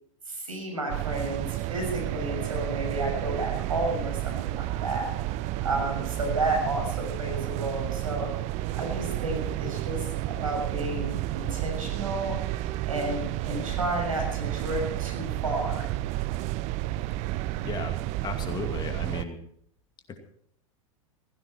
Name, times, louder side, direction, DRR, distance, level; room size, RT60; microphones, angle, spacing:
voice 1, 0.3-5.1 5.6-8.3 8.7-12.4 12.8-15.8, right 1 dB, 85° right, 2 dB, 6.6 m, -32 dB
sound 1, 0.9-19.2, right 16 dB, 40° right, 0.7 m, -31 dB
voice 2, 17.6-19.4 20.1-20.2, left 5 dB, 25° left, 5 dB, 2.4 m, -36 dB
16.5 x 16.0 x 4.5 m, 0.65 s
figure-of-eight pair, 95°, 17 cm